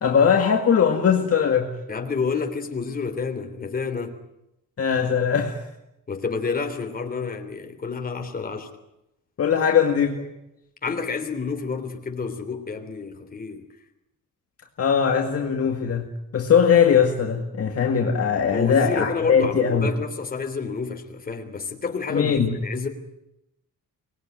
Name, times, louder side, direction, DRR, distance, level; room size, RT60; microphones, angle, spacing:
voice 1, 0.0-1.7 4.8-5.6 9.4-10.3 14.8-16.1 16.3-19.9 22.1-22.6, left 7 dB, 45° left, 2.1 m, -20 dB
voice 2, 1.9-4.2 6.1-8.7 10.8-13.7 18.5-22.9, left 5 dB, 25° left, 3.3 m, -29 dB
25.0 x 20.5 x 9.3 m
cardioid pair, 145°, 33 cm